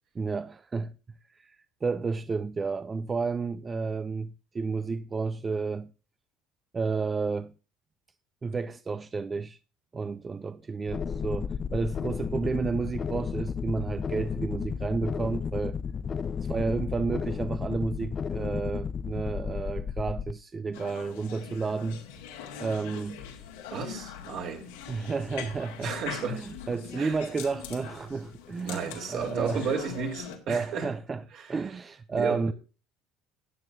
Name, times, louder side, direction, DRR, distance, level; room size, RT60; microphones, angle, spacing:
voice 1, 0.1-0.9 1.3-5.9 6.7-7.5 8.4-9.6 9.9-15.8 16.4-22.0 22.6-23.2 24.9-25.9 26.2-29.7 30.5-31.2 31.5-32.5, right 4 dB, 30° right, 0.5 m, -31 dB
sound 1, 10.9-20.3, left 6 dB, 40° left, 0.5 m, -33 dB
sound 2, 20.7-30.4, left 8 dB, 80° left, 2.1 m, -42 dB
voice 2, 23.7-24.7 25.8-26.4 27.0-27.2 28.6-30.9 31.3-31.5 32.1-32.4, right 5 dB, 60° right, 3.5 m, -33 dB
17.0 x 9.0 x 2.7 m
hypercardioid pair, 70°, 0 cm